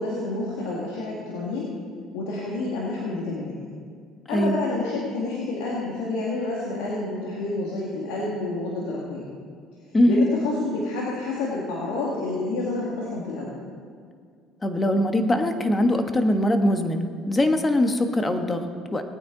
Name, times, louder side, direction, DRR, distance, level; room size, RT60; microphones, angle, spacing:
voice 1, 0.0-1.7 2.1-3.6 4.3-9.3 10.1-13.6, left 2 dB, 85° left, -4 dB, 2.1 m, -29 dB
voice 2, 4.3-4.6 9.9-10.3 14.6-19.0, left 1 dB, 20° left, 6 dB, 1.3 m, -22 dB
18.5 x 9.3 x 3.9 m, 2.1 s
supercardioid pair, 85°, 0 cm